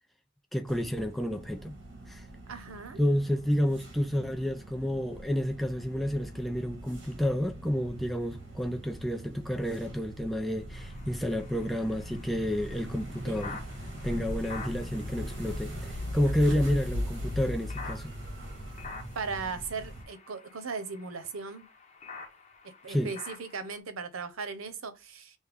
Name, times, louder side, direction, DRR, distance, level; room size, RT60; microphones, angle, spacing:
voice 1, 0.5-1.8 2.1-2.2 3.0-13.6 14.0-18.2 22.9-23.1, equal, ahead, 0.3 m, -30 dB
sound 1, 0.7-20.0, equal, 60° right, 1.3 m, -40 dB
voice 2, 2.5-3.0 13.3-13.4 19.1-21.7 22.6-25.4, right 5 dB, 90° right, 0.8 m, -38 dB
sound 2, 10.7-23.8, left 4 dB, 35° left, 0.8 m, -49 dB
6.3 x 2.2 x 3.5 m
head